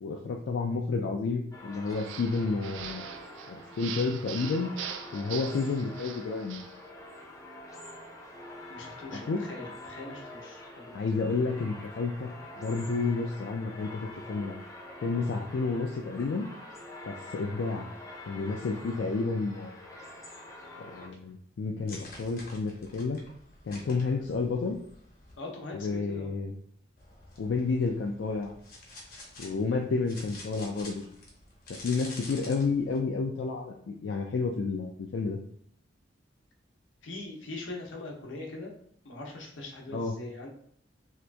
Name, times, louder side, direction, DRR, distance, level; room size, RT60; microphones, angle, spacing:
voice 1, 0.0-3.1 3.5-4.7 5.1-6.6 9.3-9.4 10.9-12.3 12.6-14.6 15.0-16.5 17.0-17.9 18.2-19.8 20.8-23.2 23.7-24.8 25.8-26.5 27.4-28.5 29.4-31.1 31.7-35.4 39.9-40.1, left 4 dB, 70° left, 1 dB, 0.4 m, -30 dB
sound 1, 1.5-21.1, left 1 dB, 15° left, 0.5 m, -46 dB
sound 2, 1.9-6.8, right 9 dB, 70° right, 0.3 m, -42 dB
voice 2, 8.7-11.0 25.4-26.3 37.0-38.7 39.0-40.5, left 2 dB, 85° left, 1 dB, 0.8 m, -42 dB
sound 3, 21.9-25.4 27.0-33.0, left 2 dB, 50° left, 0.9 m, -48 dB
2.8 x 2.5 x 3.3 m, 0.63 s
head